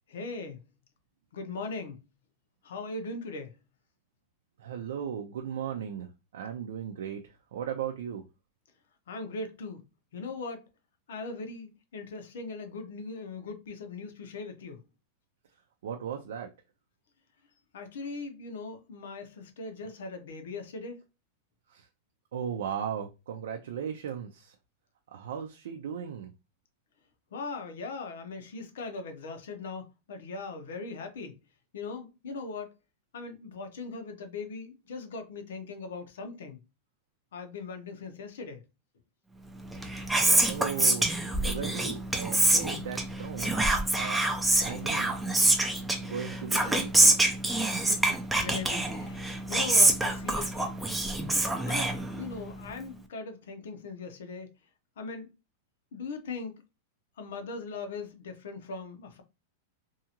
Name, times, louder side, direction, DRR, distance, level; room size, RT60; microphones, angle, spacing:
voice 1, 0.1-0.6 1.3-2.0 2.6-3.6 9.1-9.9 10.1-10.6 11.1-14.8 17.7-21.0 27.3-31.4 31.7-32.7 33.1-36.6 37.3-38.6 47.7-50.8 51.7-54.5 55.0-55.3 55.9-56.6 57.2-59.2, left 3 dB, 85° left, 0.8 m, -39 dB
voice 2, 4.6-8.2 15.8-16.5 21.7-21.9 22.3-24.5 25.1-26.3 40.5-41.0 41.4-43.6 44.0-44.2 44.6-46.9, right 8 dB, 85° right, 0.4 m, -37 dB
Whispering, 39.6-52.5, right 2 dB, 5° right, 0.4 m, -26 dB
2.7 x 2.4 x 2.8 m
supercardioid pair, 155°, 0 cm